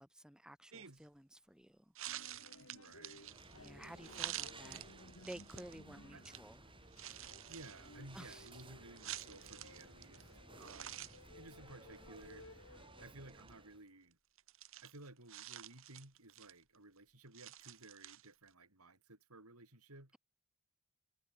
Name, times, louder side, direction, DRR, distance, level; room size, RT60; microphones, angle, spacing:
voice 1, 0.0-1.8 3.5-4.9 5.2-6.6 8.1-8.5, equal, 5° right, 1.1 m, -53 dB
sound 1, 0.7-1.0 2.0-5.8 6.3-6.4 6.9-10.3 10.6-11.2 11.5-11.6 11.9-12.3 13.3-13.5 14.4-16.8 17.3-18.5, right 12 dB, 60° right, 2.0 m, -49 dB
sound 2, 2.0-13.1, left 2 dB, 65° left, 7.9 m, -60 dB
voice 2, 2.6-3.3 6.1-6.2 7.5-11.0 11.3-14.2 14.8-20.2, right 2 dB, 85° right, 6.3 m, -57 dB
sound 3, 3.1-13.8, right 2 dB, 25° right, 5.0 m, -58 dB
head